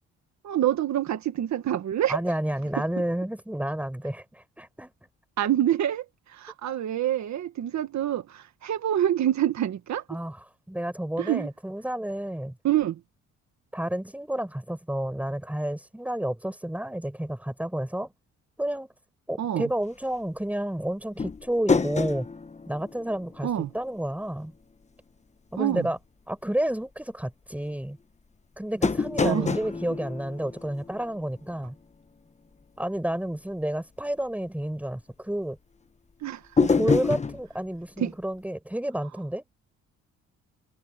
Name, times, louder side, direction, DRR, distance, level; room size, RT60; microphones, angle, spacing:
voice 1, 0.4-2.2 5.4-10.0 11.2-11.5 12.6-13.0 19.4-19.7 23.4-23.7 25.5-25.9 29.2-29.5 36.2-36.7 38.0-38.1, right 11 dB, 65° right, 1.8 m, -26 dB
voice 2, 2.1-4.9 10.1-12.5 13.7-18.1 18.6-18.9 19.3-22.3 22.7-24.5 25.5-26.0 26.3-28.0 28.6-31.8 32.8-35.6 36.7-39.4, right 1 dB, 5° right, 5.7 m, -30 dB
sound 1, 21.2-23.8 24.1-24.2 28.8-31.3 36.6-37.4, left 4 dB, 25° left, 1.2 m, -27 dB
cardioid pair, 90°, 30 cm